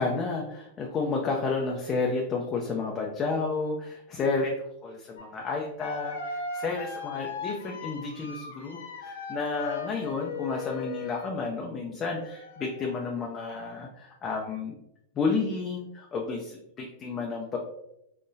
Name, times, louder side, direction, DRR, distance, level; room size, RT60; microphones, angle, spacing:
voice 1, 0.0-4.5 4.8-14.8 15.2-17.6, left 4 dB, 25° left, 0 dB, 0.5 m, -31 dB
sound 1, 5.2-5.3 5.8-11.4 12.1-13.0, left 4 dB, 80° left, 0.6 m, -38 dB
3.8 x 2.9 x 2.6 m, 0.82 s
supercardioid pair, 135°, 0 cm